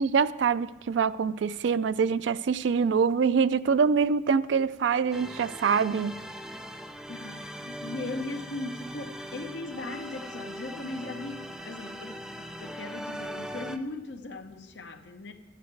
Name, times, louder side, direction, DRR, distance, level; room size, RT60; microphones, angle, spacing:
voice 1, 0.0-6.2, right 6 dB, 75° right, 0.4 m, -25 dB
sound 1, 5.1-13.8, equal, 5° right, 0.5 m, -40 dB
voice 2, 7.1-15.3, left 2 dB, 70° left, 0.9 m, -38 dB
12.5 x 9.1 x 4.7 m
head